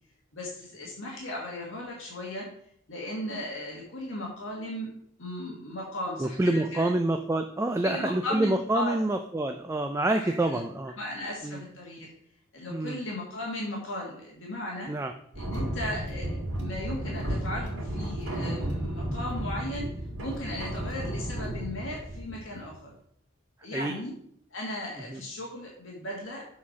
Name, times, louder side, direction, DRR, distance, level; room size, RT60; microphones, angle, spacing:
voice 1, 0.3-2.5 2.9-4.9 5.2-6.9 7.8-9.0 10.1-10.6 11.0-12.1 12.5-14.9 15.3-19.9 20.2-22.9 23.6-24.1 24.5-26.5, left 1 dB, 70° left, -2 dB, 1.6 m, -36 dB
voice 2, 6.2-10.9 11.4-11.6 12.7-13.0 14.9-15.1 23.7-23.9 25.1-25.2, right 2 dB, 15° right, 6 dB, 0.3 m, -27 dB
sound 1, 15.3-22.7, right 1 dB, 65° right, 2.4 m, -33 dB
7.3 x 4.3 x 5.8 m, 0.68 s
head